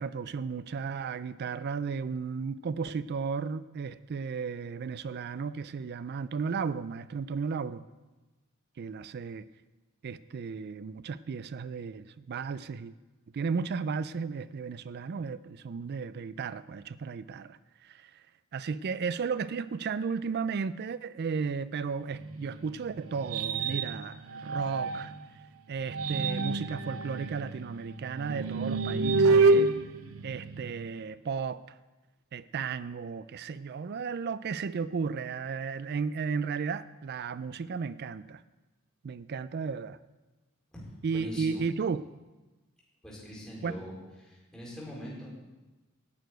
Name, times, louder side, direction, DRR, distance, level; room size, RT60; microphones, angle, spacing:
voice 1, 0.0-7.8 8.8-9.5 10.0-12.9 13.3-18.1 18.5-25.1 25.7-29.7 30.2-31.6 32.3-38.4 39.0-40.0 41.0-42.1 43.6-43.7, right 5 dB, 50° right, 0.4 m, -34 dB
sound 1, 22.1-25.2 25.8-30.9, right 3 dB, 80° right, 0.7 m, -28 dB
voice 2, 41.1-41.6 43.0-43.9 44.2-45.3, equal, 5° left, 4.1 m, -42 dB
11.0 x 6.7 x 9.2 m
head